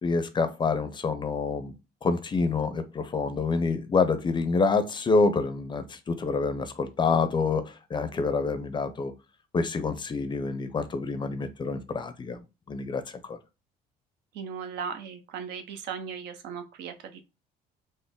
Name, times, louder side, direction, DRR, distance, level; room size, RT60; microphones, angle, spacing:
voice 1, 0.0-1.8 2.0-9.1 9.5-12.4 12.7-13.4, left 4 dB, 25° left, 11 dB, 0.5 m, -27 dB
voice 2, 14.3-17.2, right 6 dB, 80° right, 8 dB, 0.6 m, -37 dB
3.8 x 2.0 x 3.5 m, 0.28 s
cardioid pair, 110°, 17 cm